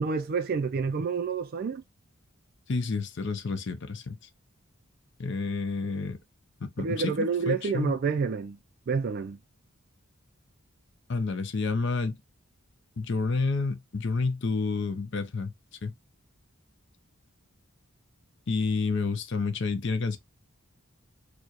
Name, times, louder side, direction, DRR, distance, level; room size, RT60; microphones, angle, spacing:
voice 1, 0.0-1.8 6.8-8.6 8.9-9.4, right 5 dB, 45° right, 0.3 m, -28 dB
voice 2, 2.7-4.2 5.2-6.2 6.6-8.0 11.1-12.2 13.0-15.5 15.8-15.9 18.5-20.2, left 4 dB, 55° left, 0.6 m, -29 dB
4.5 x 2.1 x 2.8 m
head